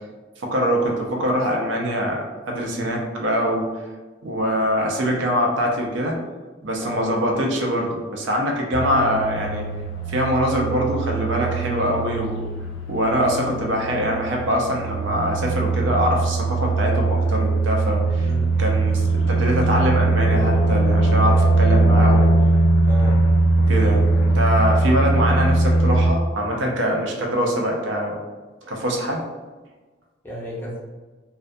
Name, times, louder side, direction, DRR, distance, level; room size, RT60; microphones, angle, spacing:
voice 1, 0.4-3.7 4.2-6.2 6.6-9.7 10.1-12.4 12.9-18.3 18.6-22.3 23.6-28.2 28.6-29.3, equal, 75° right, 0 dB, 0.5 m, -23 dB
voice 2, 2.7-3.0 6.8-7.1 18.2-18.5 22.9-23.2 30.2-30.8, equal, 10° left, -6 dB, 0.5 m, -33 dB
sound 1, 8.7-26.1, right 2 dB, 80° left, 0.3 m, -20 dB
2.3 x 2.1 x 2.5 m, 1.3 s
head